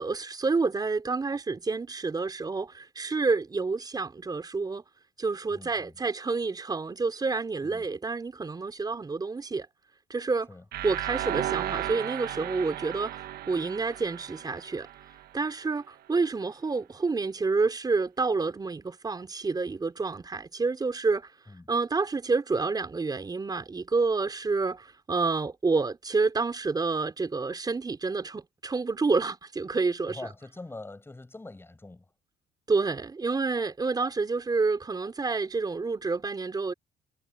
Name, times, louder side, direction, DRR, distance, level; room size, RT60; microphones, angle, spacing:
voice 1, 0.0-4.8 5.2-9.7 10.1-10.5 10.8-13.2 13.5-14.9 15.3-21.3 21.7-30.2 32.7-36.7, right 4 dB, 25° right, 4.7 m, -28 dB
voice 2, 5.5-6.0 7.6-7.9 10.5-10.6 10.9-11.0 21.5-21.7 30.1-32.1, left 2 dB, 15° left, 7.4 m, -44 dB
sound 1, 10.7-15.6, right 13 dB, 65° right, 1.3 m, -35 dB
cardioid pair, 110°, 17 cm